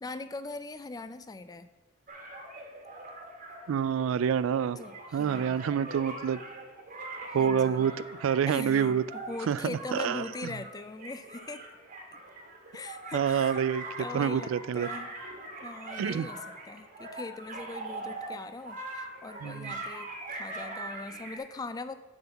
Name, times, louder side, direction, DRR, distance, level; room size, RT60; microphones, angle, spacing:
voice 1, 0.0-1.7 4.8-5.6 7.3-7.9 8.5-11.7 12.7-13.6 14.0-15.1 15.6-21.9, left 3 dB, 20° left, 12 dB, 0.4 m, -41 dB
sound 1, 2.1-21.4, right 2 dB, 40° right, 1.4 m, -42 dB
voice 2, 3.7-4.8 5.1-6.4 7.3-7.9 8.2-9.0 9.5-10.2 13.1-13.8 14.1-14.9 16.0-16.3 19.4-19.7, right 7 dB, 75° right, 17 dB, 0.3 m, -27 dB
9.2 x 4.0 x 6.9 m, 1.2 s
head